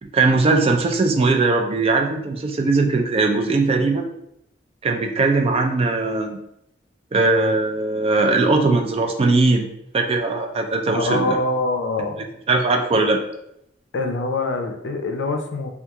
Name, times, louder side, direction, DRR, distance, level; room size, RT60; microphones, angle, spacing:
voice 1, 0.0-4.0 4.8-6.4 7.1-9.7 9.9-11.4 12.5-13.2, right 3 dB, 35° right, 4 dB, 0.3 m, -19 dB
voice 2, 10.9-12.3 13.9-15.7, left 2 dB, 80° left, 5 dB, 0.4 m, -24 dB
3.4 x 2.3 x 2.8 m, 0.79 s
head